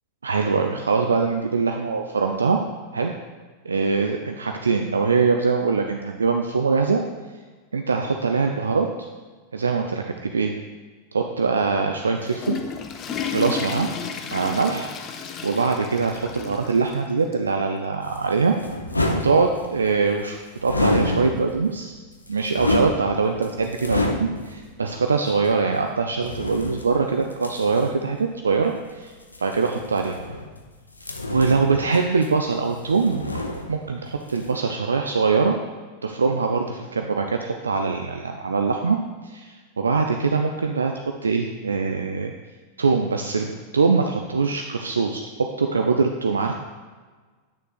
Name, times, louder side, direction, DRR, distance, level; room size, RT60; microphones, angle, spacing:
voice 1, 0.2-2.6 2.9-3.1 3.6-7.0 7.7-8.9 9.5-10.5 11.1-12.6 13.3-13.9 14.3-14.9 15.4-18.5 19.2-21.9 22.3-29.1 29.4-30.2 31.3-33.2 33.7-35.6 36.0-39.0 39.2-40.9 41.2-42.3 42.8-46.5, right 4 dB, 75° right, 4 dB, 0.3 m, -23 dB
Water / Toilet flush, 12.0-17.0 17.3-17.4 18.2-18.3 19.5-19.6, left 6 dB, 30° left, 0.6 m, -33 dB
sound 1, 18.0-19.9 20.6-21.7 22.1-24.6 25.3-25.4 26.2-27.9 29.2-30.6 31.0-32.6 32.8-34.0 34.3-34.5, left 2 dB, 80° left, 0.5 m, -28 dB
8.1 x 6.6 x 2.4 m, 1.4 s
figure-of-eight pair, 90°, 0 cm